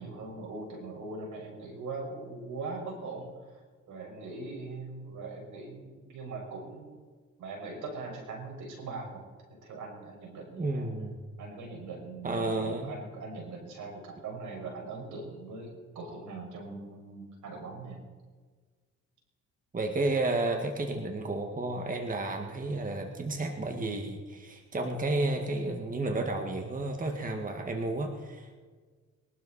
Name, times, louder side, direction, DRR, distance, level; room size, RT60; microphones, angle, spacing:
voice 1, 0.0-3.6 3.9-6.9 7.4-9.3 9.6-10.9 11.4-18.0, right 3 dB, 80° right, 1 dB, 5.6 m, -41 dB
voice 2, 10.6-11.2 12.2-12.9 19.7-28.6, right 2 dB, 25° right, 4 dB, 1.9 m, -32 dB
22.5 x 12.5 x 4.3 m, 1.5 s
cardioid pair, 90°, 30 cm